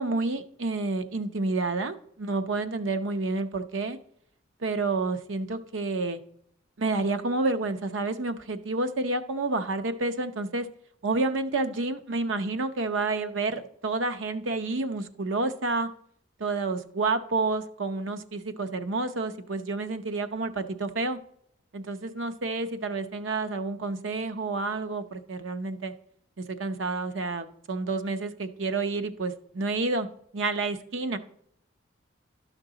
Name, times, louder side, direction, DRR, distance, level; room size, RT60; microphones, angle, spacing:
voice 1, 0.0-4.0 4.6-6.2 6.8-10.7 11.0-15.9 16.4-21.2 21.7-25.9 26.4-30.1 30.3-31.2, right 3 dB, 85° right, 9 dB, 0.7 m, -29 dB
12.0 x 6.0 x 3.9 m, 0.68 s
head